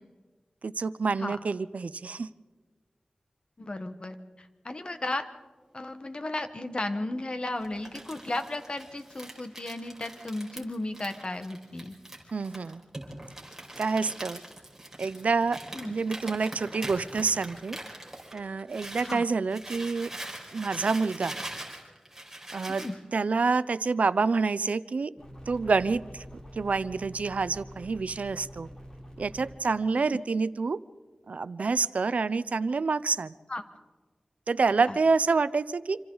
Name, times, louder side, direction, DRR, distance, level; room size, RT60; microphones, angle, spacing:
voice 1, 0.6-2.3 12.3-12.8 13.8-14.4 15.0-15.6 15.8-17.8 18.3-20.1 20.5-21.3 22.5-22.8 23.1-25.1 25.5-26.2 26.6-28.7 29.2-30.8 31.3-33.3 34.5-36.0, right 4 dB, 80° right, 16 dB, 0.5 m, -27 dB
voice 2, 3.6-5.3 5.7-12.0 15.7-15.9 19.0-19.2 22.7-22.9 29.9-30.2 33.5-33.6 34.9-35.0, left 2 dB, 45° left, 8 dB, 1.5 m, -35 dB
Crumpling crinkling, 7.6-19.2 19.5-22.9, right 1 dB, 15° right, 4.9 m, -42 dB
sound 1, 25.2-29.6, equal, 30° left, 4.6 m, -46 dB
26.5 x 26.5 x 4.0 m, 1.4 s
wide cardioid pair, 70°, 2 cm